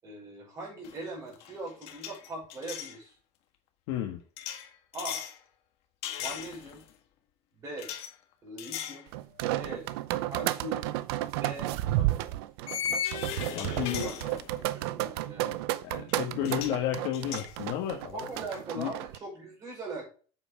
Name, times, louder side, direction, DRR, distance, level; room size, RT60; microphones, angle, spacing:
voice 1, 0.0-3.2 4.9-5.2 6.2-6.9 7.5-7.9 8.4-9.1 9.5-9.9 10.3-10.9 11.3-12.3 13.5-15.5 18.1-20.1, right 2 dB, 25° right, -2 dB, 5.5 m, -41 dB
sound 1, 0.8-1.1 1.3-3.0 4.4-5.4 6.0-6.9 7.8-8.1 8.6-9.0 9.5-9.6 11.2-11.3 12.7-14.7 16.1-16.2 16.4-16.8 17.1-18.6, left 9 dB, 50° left, 1.6 m, -38 dB
voice 2, 3.9-4.2 13.5-14.1 15.4-15.6 15.8-18.0 18.8-18.9, left 11 dB, 65° left, 2 dB, 1.4 m, -32 dB
sound 2, 9.1-19.2, right 15 dB, 80° right, 0.7 m, -32 dB
8.1 x 6.9 x 4.9 m, 0.39 s
cardioid pair, 160°, 13 cm